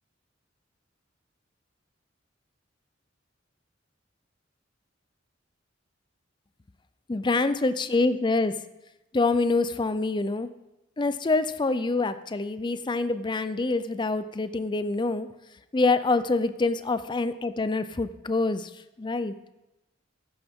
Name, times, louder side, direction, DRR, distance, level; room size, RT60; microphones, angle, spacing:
voice 1, 7.1-8.6 9.1-10.5 11.0-15.3 15.7-18.7 19.0-19.3, left 3 dB, 25° left, 13 dB, 0.4 m, -26 dB
13.0 x 10.0 x 3.6 m, 0.97 s
head